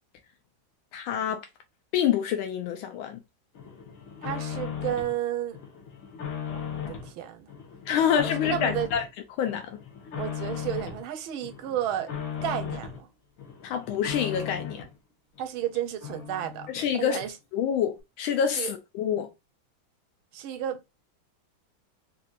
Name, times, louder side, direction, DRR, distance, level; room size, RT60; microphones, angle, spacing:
voice 1, 0.9-1.4 1.9-3.2 7.9-9.0 9.4-9.8 13.6-14.8 16.7-17.2 17.5-19.3, left 8 dB, 85° left, 1.4 m, -27 dB
sound 1, 3.6-5.2 5.5-7.1 7.5-9.1 9.5-11.0 11.4-13.0 13.4-14.9 15.4-15.5 15.7-15.8 16.0-16.9 17.2-17.3, left 7 dB, 70° left, 1.8 m, -37 dB
voice 2, 4.2-5.6 6.5-7.5 7.9-8.1 8.5-8.9 10.2-12.1 12.4-13.1 15.4-16.7 17.0-17.3 18.6-18.7 20.3-20.8, right 11 dB, 90° right, 1.5 m, -32 dB
4.2 x 2.6 x 2.3 m
omnidirectional pair, 2.2 m